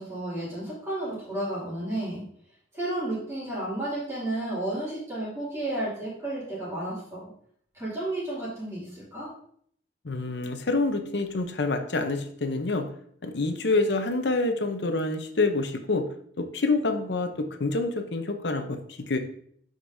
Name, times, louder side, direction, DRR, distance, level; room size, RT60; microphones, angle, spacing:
voice 1, 0.0-2.2 2.7-7.2 7.7-9.3, right 1 dB, 15° right, -9 dB, 2.7 m, -32 dB
voice 2, 10.0-12.9 13.2-16.1 16.4-19.2, left 3 dB, 70° left, 7 dB, 0.7 m, -27 dB
7.8 x 5.2 x 2.7 m, 0.63 s
head